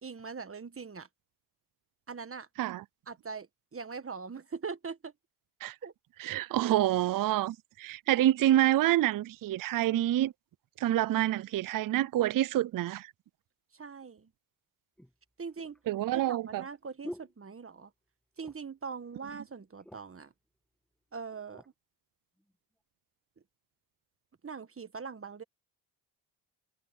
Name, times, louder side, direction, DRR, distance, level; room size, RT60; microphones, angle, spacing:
voice 1, 0.0-1.1 2.1-2.5 3.1-5.1 5.8-5.9 6.7-6.8 13.7-14.3 15.4-15.8 16.3-17.9 18.4-20.3 21.1-21.6 24.4-25.4, right 5 dB, 30° right, 1.3 m, -42 dB
voice 2, 6.2-10.3 10.8-13.1 15.9-16.6, right 13 dB, 45° right, 0.4 m, -27 dB
sound 1, 14.0-14.1 15.0-18.1 18.4-18.8 19.2-19.3 19.6-20.3 21.0-21.7 22.4-22.5, equal, ahead, 2.3 m, -49 dB
cardioid pair, 75°, 48 cm